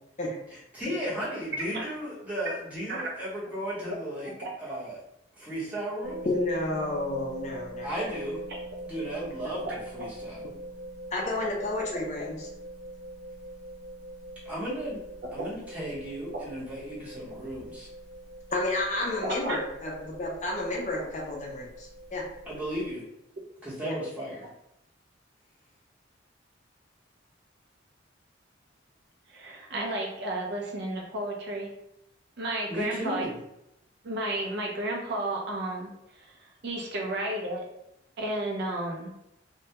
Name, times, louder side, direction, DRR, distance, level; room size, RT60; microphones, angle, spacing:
voice 1, 0.5-4.3 4.6-5.0 5.4-6.2 7.8-8.4 8.9-10.4 14.4-15.0 15.3-17.9 22.5-23.0 23.6-24.5 32.7-33.3, equal, 10° right, -8 dB, 0.8 m, -35 dB
voice 2, 4.4-4.8 8.5-8.6 9.7-9.8 15.4-15.5 19.2-19.6 29.3-31.7 32.4-33.3 34.0-37.7 38.2-39.1, right 1 dB, 60° right, 0 dB, 0.5 m, -33 dB
sound 1, 6.0-22.9, right 1 dB, 80° left, 0.7 m, -43 dB
voice 3, 6.2-7.9 11.1-12.4 18.5-22.2 23.8-24.0, left 2 dB, 40° left, -2 dB, 0.4 m, -31 dB
2.1 x 2.1 x 2.8 m, 0.83 s
head